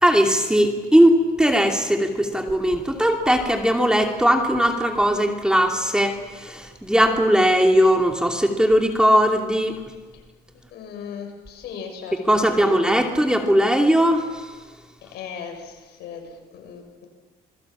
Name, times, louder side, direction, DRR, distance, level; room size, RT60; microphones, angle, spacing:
voice 1, 0.0-9.8 12.3-14.5, equal, 5° right, 3 dB, 2.7 m, -19 dB
voice 2, 10.5-13.0 15.0-17.1, left 6 dB, 75° left, 3 dB, 7.0 m, -38 dB
27.5 x 22.0 x 7.4 m, 1.3 s
cardioid pair, 110°, 17 cm